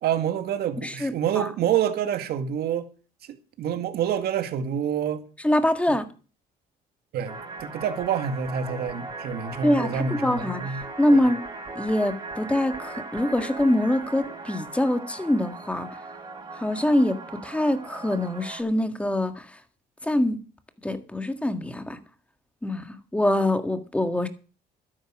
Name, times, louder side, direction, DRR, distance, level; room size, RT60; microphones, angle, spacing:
voice 1, 0.0-2.9 3.3-5.2 7.1-10.8, right 8 dB, 70° right, 2.0 m, -27 dB
voice 2, 0.8-1.5 5.4-6.1 9.6-10.7 11.0-11.4 11.7-15.9 16.5-19.6 20.0-20.4 20.8-22.0 22.6-24.3, left 1 dB, 5° left, 1.7 m, -24 dB
sound 1, 7.2-18.6, right 3 dB, 25° right, 4.7 m, -38 dB
12.5 x 10.0 x 6.2 m
cardioid pair, 110°, 17 cm